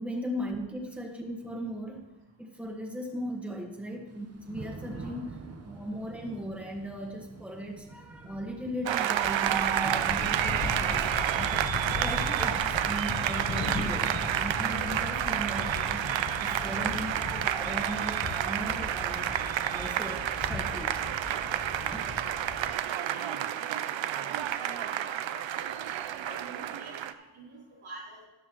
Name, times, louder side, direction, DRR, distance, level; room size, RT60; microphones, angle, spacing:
voice 1, 0.0-2.1 2.4-5.4 5.6-19.3 19.7-21.0 21.8-22.2, equal, 5° right, 1 dB, 1.5 m, -38 dB
Thunder / Rain, 4.1-19.8, right 3 dB, 30° right, 1.0 m, -48 dB
sound 1, 8.1-22.7, left 4 dB, 30° left, 0.8 m, -38 dB
Applause, 8.9-27.1, right 10 dB, 70° right, 0.6 m, -30 dB
voice 2, 22.2-23.8 24.2-25.7 26.2-28.3, right 3 dB, 85° right, -5 dB, 3.7 m, -47 dB
13.5 x 10.0 x 3.0 m, 1.0 s
cardioid pair, 95°, 48 cm